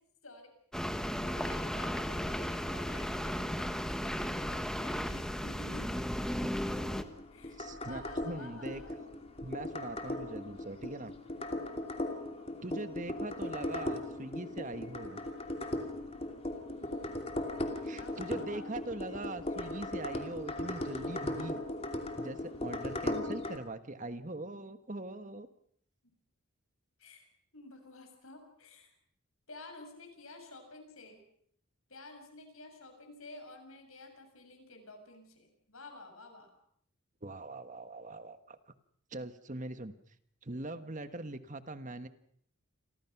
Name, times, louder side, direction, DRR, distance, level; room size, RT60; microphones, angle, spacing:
sound 1, 0.7-7.0, equal, 5° left, 1.2 m, -35 dB
voice 1, 1.2-6.2 7.3-9.0 16.7-17.2 17.9-18.7 27.0-27.3 27.5-28.9 29.5-31.2 31.9-36.6, left 2 dB, 70° left, 5 dB, 7.1 m, -51 dB
sound 2, 6.7-23.6, left 1 dB, 25° left, 2.7 m, -38 dB
voice 2, 7.6-8.8 9.4-11.1 12.6-15.2 17.8-21.6 22.2-25.5 37.2-38.6 39.1-39.9 40.4-42.1, right 2 dB, 35° right, 11 dB, 1.3 m, -42 dB
29.5 x 23.5 x 6.0 m, 0.65 s
head